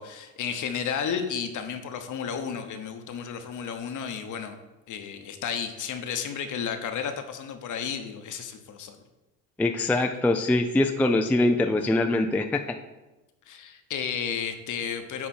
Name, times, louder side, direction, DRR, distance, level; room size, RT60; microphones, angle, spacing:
voice 1, 0.0-4.6 4.9-9.0 9.9-10.0 13.5-15.3, left 7 dB, 50° left, 7 dB, 1.1 m, -32 dB
voice 2, 9.6-12.6, left 2 dB, 5° left, 6 dB, 0.4 m, -23 dB
10.5 x 3.6 x 4.4 m, 1.1 s
supercardioid pair, 85°, 40 cm